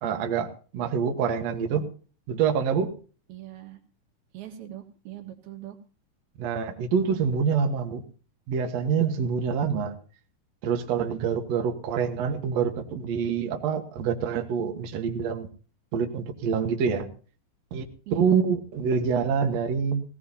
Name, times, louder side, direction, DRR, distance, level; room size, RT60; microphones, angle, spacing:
voice 1, 0.0-1.9 2.3-2.9 6.4-8.0 8.5-9.9 10.6-15.5 15.9-17.1 17.7-17.9 18.2-20.0, right 6 dB, 55° right, 5 dB, 2.1 m, -26 dB
voice 2, 3.3-3.8 4.3-5.8 18.1-18.4, right 13 dB, 80° right, 5 dB, 3.4 m, -41 dB
18.0 x 17.0 x 2.8 m, 0.38 s
omnidirectional pair, 4.3 m